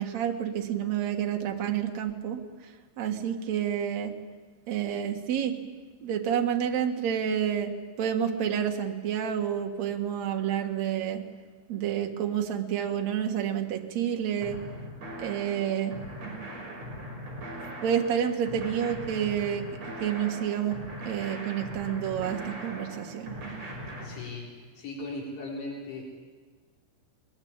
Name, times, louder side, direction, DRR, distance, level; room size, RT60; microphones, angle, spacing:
voice 1, 0.0-4.1 4.7-5.6 6.0-7.7 8.0-11.2 11.7-14.6 15.2-15.9 17.8-19.7 20.0-20.8 21.1-23.4, right 9 dB, 60° right, 3 dB, 1.9 m, -29 dB
sound 1, 14.4-24.1, right 1 dB, 30° right, 6.3 m, -40 dB
voice 2, 24.0-26.0, left 2 dB, 65° left, -3 dB, 6.1 m, -38 dB
22.5 x 21.5 x 8.8 m, 1.4 s
omnidirectional pair, 5.8 m